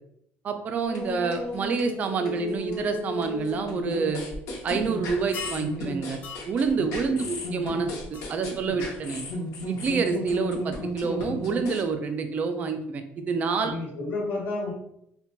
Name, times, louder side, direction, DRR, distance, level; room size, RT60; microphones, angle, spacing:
voice 1, 0.4-4.2 4.6-6.2 6.5-7.9 8.3-9.2 9.7-13.7, right 5 dB, 30° right, 7 dB, 0.3 m, -27 dB
sound 1, 0.7-11.8, left 1 dB, 85° left, 0.8 m, -34 dB
sound 2, 5.3-5.7 6.2-6.5 8.1-8.2, left 5 dB, 30° left, 0.4 m, -37 dB
voice 2, 13.6-14.7, left 2 dB, 50° left, -4 dB, 1.2 m, -31 dB
3.9 x 2.2 x 2.2 m, 0.75 s
cardioid pair, 165°, 5 cm